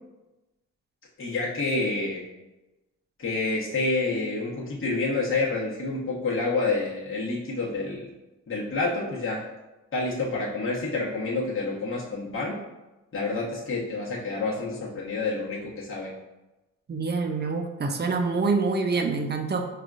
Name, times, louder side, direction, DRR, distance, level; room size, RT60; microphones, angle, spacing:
voice 1, 1.2-2.2 3.2-8.1 8.5-9.4 9.9-12.6 13.1-16.1, left 3 dB, 35° left, -6 dB, 1.1 m, -28 dB
voice 2, 16.9-19.7, right 4 dB, 30° right, 4 dB, 0.5 m, -26 dB
4.8 x 2.4 x 2.4 m, 1.0 s
hypercardioid pair, 45°, 36 cm